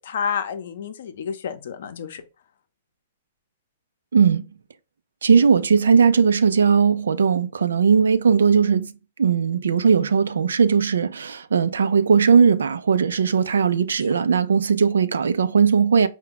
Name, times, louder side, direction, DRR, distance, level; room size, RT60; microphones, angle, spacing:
voice 1, 0.0-2.2, left 7 dB, 65° left, 0.7 m, -29 dB
voice 2, 4.1-4.4 5.2-8.9 9.2-16.1, right 6 dB, 85° right, 0.4 m, -18 dB
4.4 x 2.2 x 3.9 m
hypercardioid pair, 125°, 0 cm